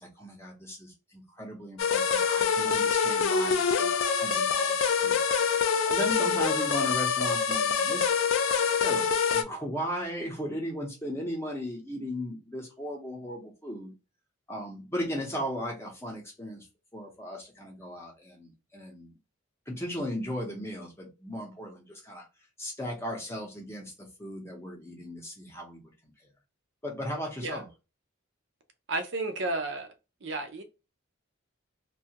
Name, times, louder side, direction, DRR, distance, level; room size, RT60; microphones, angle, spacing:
voice 1, 0.0-5.2 5.9-8.1 8.7-13.9 14.5-16.7 16.9-19.1 19.7-22.3 22.6-26.1 26.8-27.7, equal, 10° left, 0.7 m, -37 dB
sound 1, 1.8-9.4, left 6 dB, 70° left, 0.4 m, -25 dB
voice 2, 28.9-29.9 30.2-30.6, right 2 dB, 60° right, 0.5 m, -32 dB
2.6 x 2.3 x 2.8 m
head